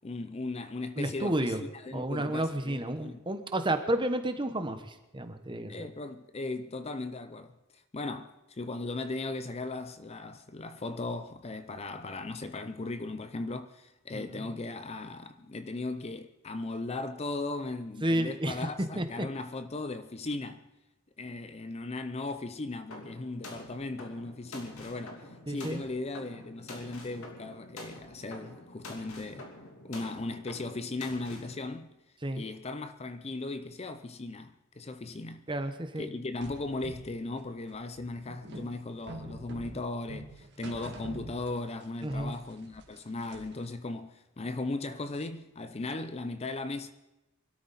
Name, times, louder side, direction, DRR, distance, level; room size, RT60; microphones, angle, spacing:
voice 1, 0.0-3.2 5.7-20.7 21.2-29.5 29.8-32.0 32.4-35.5 36.0-46.9, left 2 dB, 30° left, 0.5 m, -37 dB
voice 2, 1.0-1.6 1.9-5.9 14.1-14.5 18.0-18.7 19.0-19.3 25.5-25.8 32.2-32.4 35.5-36.1 42.0-42.3, right 1 dB, 20° right, 1.0 m, -31 dB
sound 1, 22.9-31.6, left 1 dB, 75° left, 3.0 m, -47 dB
sound 2, 36.4-41.8 42.1-43.6, right 1 dB, 50° right, 2.1 m, -45 dB
23.5 x 13.0 x 4.1 m
head